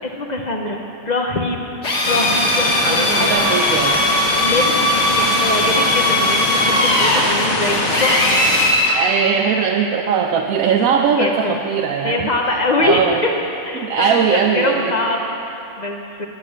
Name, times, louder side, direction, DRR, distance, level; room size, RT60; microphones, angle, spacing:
voice 1, 0.1-0.8 1.0-1.7 2.1-3.3 4.4-8.4 11.2-11.6 12.0-13.3 13.6-14.2 14.5-16.3, left 2 dB, 45° left, 1 dB, 0.6 m, -23 dB
Drill, 1.8-9.0, left 1 dB, 60° left, 1.7 m, -19 dB
sound 1, 2.0-8.7, left 2 dB, 80° left, 1.5 m, -23 dB
voice 2, 2.8-4.1 8.9-12.3 12.8-13.2 13.7-15.0, right 6 dB, 85° right, 2 dB, 1.0 m, -19 dB
11.0 x 5.8 x 6.2 m, 2.8 s
omnidirectional pair, 1.4 m